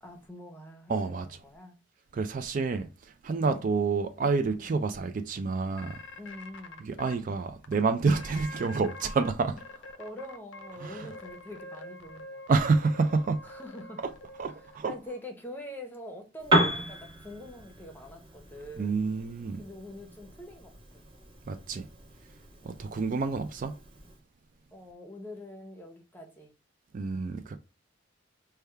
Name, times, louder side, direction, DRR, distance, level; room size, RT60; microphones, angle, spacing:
voice 1, 0.0-1.8 3.4-3.7 4.6-4.9 6.2-6.9 9.5-9.6 10.0-12.4 13.4-14.0 14.8-19.1 19.6-21.0 22.6-23.0 24.7-26.5, left 1 dB, 10° left, 0.7 m, -45 dB
voice 2, 0.9-1.3 2.1-2.9 3.2-6.0 6.8-9.5 10.8-11.1 12.5-13.4 14.4-14.9 18.8-19.6 21.5-21.9 22.6-23.7 26.9-27.5, right 4 dB, 40° right, 0.3 m, -28 dB
sound 1, 5.8-7.1 7.6-7.7 8.1-9.3 9.6-14.8, left 2 dB, 70° left, 0.5 m, -45 dB
Piano, 16.4-24.2, right 1 dB, 25° right, 1.0 m, -34 dB
3.4 x 2.2 x 4.4 m
head